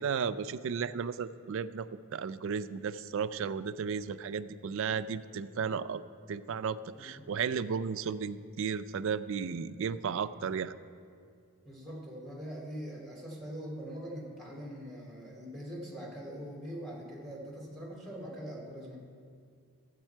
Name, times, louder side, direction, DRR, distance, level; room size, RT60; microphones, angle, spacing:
voice 1, 0.0-1.9 2.1-6.0 6.3-10.8, right 6 dB, 60° right, 14 dB, 0.3 m, -34 dB
voice 2, 7.0-7.3 11.6-19.0, equal, ahead, -3 dB, 2.4 m, -42 dB
13.0 x 8.1 x 4.5 m, 2.2 s
head